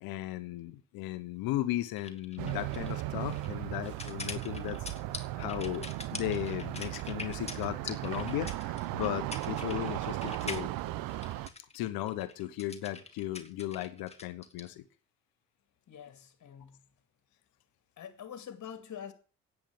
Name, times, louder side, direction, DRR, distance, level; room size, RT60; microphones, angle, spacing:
voice 1, 0.0-4.8 5.4-5.9 6.1-10.7 11.7-14.8, left 15 dB, 75° left, 1.1 m, -36 dB
sound 1, 2.0-14.7, left 3 dB, 15° left, 2.2 m, -44 dB
sound 2, 2.4-11.5, right 16 dB, 70° right, 0.9 m, -36 dB
voice 2, 15.9-16.9 18.0-19.1, left 8 dB, 50° left, 2.4 m, -45 dB
10.0 x 8.7 x 9.3 m
hypercardioid pair, 55°, 36 cm